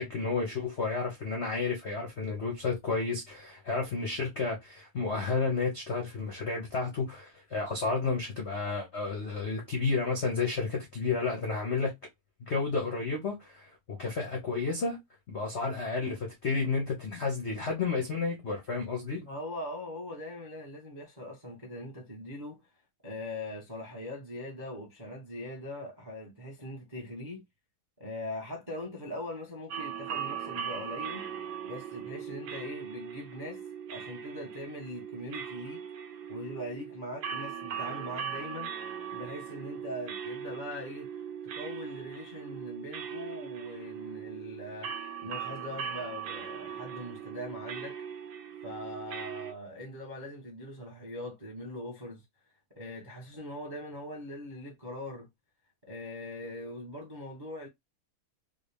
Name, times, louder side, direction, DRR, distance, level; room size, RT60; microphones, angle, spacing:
voice 1, 0.0-11.9 12.4-15.0 15.3-19.2, left 4 dB, 70° left, 0.6 m, -31 dB
voice 2, 19.2-22.6 23.0-27.4 28.0-31.3 31.6-33.6 33.9-35.8 36.3-38.7 39.1-41.1 41.4-44.9 45.2-48.0 48.6-52.2 52.7-55.3 55.9-57.7, left 1 dB, 30° right, 0.4 m, -41 dB
sound 1, 29.7-49.5, right 8 dB, 70° right, 1.1 m, -39 dB
3.8 x 2.1 x 3.4 m
omnidirectional pair, 2.4 m